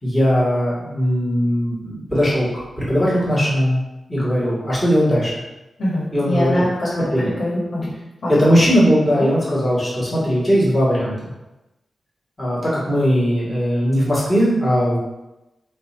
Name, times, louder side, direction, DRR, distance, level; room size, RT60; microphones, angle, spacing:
voice 1, 0.0-3.8 4.1-5.3 6.1-6.6 6.9-7.3 8.3-11.3 12.4-15.0, equal, 5° left, -9 dB, 1.6 m, -19 dB
voice 2, 5.8-7.9 8.2-8.4 9.1-9.3, left 1 dB, 60° left, -7 dB, 1.5 m, -23 dB
5.1 x 2.4 x 4.3 m, 0.98 s
wide cardioid pair, 170°, 0 cm